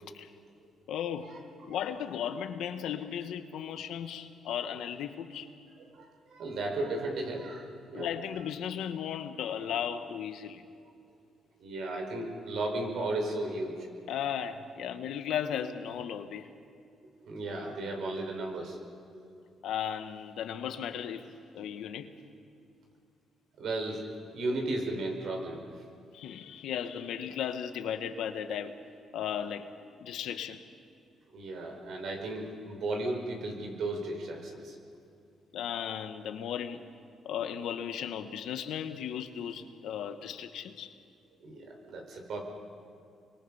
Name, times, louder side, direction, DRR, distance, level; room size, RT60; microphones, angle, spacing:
voice 1, 0.9-1.4 1.7-5.5 7.9-10.6 14.1-16.5 19.6-21.3 21.5-22.1 26.1-28.8 29.1-29.7 30.0-30.6 35.5-36.8 37.2-41.0, left 9 dB, 80° left, 8 dB, 1.4 m, -36 dB
voice 2, 5.8-8.1 11.6-13.7 17.2-18.8 19.1-19.3 23.6-24.0 24.3-25.6 31.3-34.8 41.4-42.4, right 2 dB, 70° right, 2 dB, 5.2 m, -35 dB
30.0 x 23.5 x 5.7 m, 2.5 s
cardioid pair, 90°, 0 cm